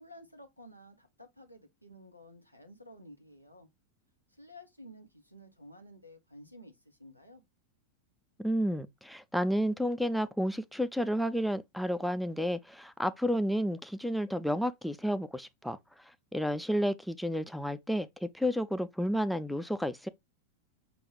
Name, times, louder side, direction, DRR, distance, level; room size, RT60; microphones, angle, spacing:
voice 1, 0.0-3.7 4.3-7.4, equal, 90° right, 1.0 m, -53 dB
voice 2, 8.4-15.8 16.3-20.1, equal, ahead, 0.3 m, -31 dB
6.1 x 2.5 x 3.4 m
figure-of-eight pair, 90°, 0 cm